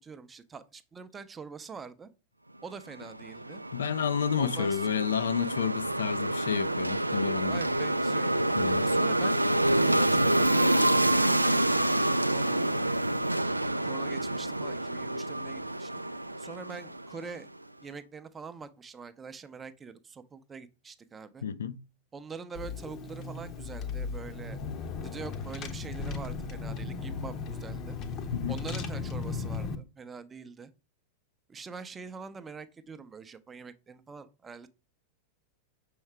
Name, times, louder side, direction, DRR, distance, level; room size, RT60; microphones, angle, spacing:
voice 1, 0.0-2.1 2.6-3.6 4.4-4.8 7.5-8.3 8.8-12.8 13.5-15.9 16.4-17.5 17.8-21.4 22.1-24.6 25.0-28.0 28.5-30.7 31.5-34.7, right 5 dB, 20° right, 0.6 m, -44 dB
sound 1, 3.0-17.4, right 1 dB, 85° right, 0.3 m, -27 dB
voice 2, 3.7-7.6 8.6-8.8 21.4-21.8 28.3-28.6, left 7 dB, 65° left, 0.4 m, -30 dB
Car / Engine, 22.5-29.7, left 5 dB, 35° left, 0.8 m, -36 dB
6.2 x 4.7 x 3.3 m
figure-of-eight pair, 90°, 0 cm